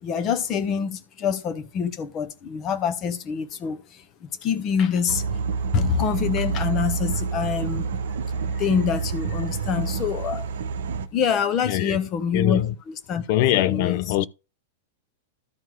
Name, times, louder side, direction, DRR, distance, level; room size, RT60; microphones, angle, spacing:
voice 1, 0.0-5.2 5.7-7.9 8.4-10.5 11.1-12.6 12.9-13.2 13.7-14.1, left 7 dB, 30° left, 1.3 m, -26 dB
sound 1, 5.1-11.1, right 5 dB, 60° right, 0.8 m, -28 dB
voice 2, 11.6-12.0 12.3-12.7 13.3-14.3, left 13 dB, 50° left, 0.6 m, -22 dB
13.0 x 4.5 x 3.6 m
figure-of-eight pair, 95°, 0 cm